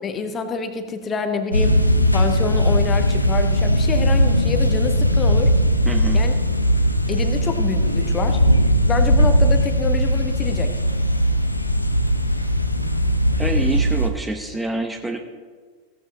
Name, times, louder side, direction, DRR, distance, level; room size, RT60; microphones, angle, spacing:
voice 1, 0.0-1.8 2.1-5.5 6.1-6.3 7.1-8.4 8.8-10.7, left 4 dB, 25° left, 7 dB, 1.3 m, -27 dB
sound 1, 1.5-14.1, equal, 85° left, 0.9 m, -18 dB
voice 2, 5.8-6.2 13.4-15.2, right 2 dB, 10° right, 5 dB, 0.9 m, -26 dB
16.0 x 13.5 x 3.4 m, 1.5 s
figure-of-eight pair, 90°, 0 cm